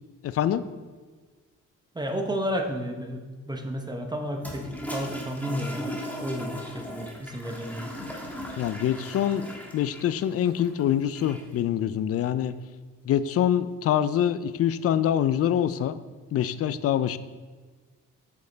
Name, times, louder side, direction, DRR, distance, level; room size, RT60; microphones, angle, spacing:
voice 1, 0.2-0.6 8.6-9.5 9.7-12.5 13.0-16.0 16.3-17.2, left 10 dB, 50° left, 15 dB, 0.4 m, -25 dB
voice 2, 1.9-8.0, equal, 15° right, 3 dB, 0.8 m, -32 dB
Toilet flush, 4.4-11.6, equal, 5° left, 1.3 m, -38 dB
6.6 x 5.3 x 4.0 m, 1.4 s
cardioid pair, 90°, 30 cm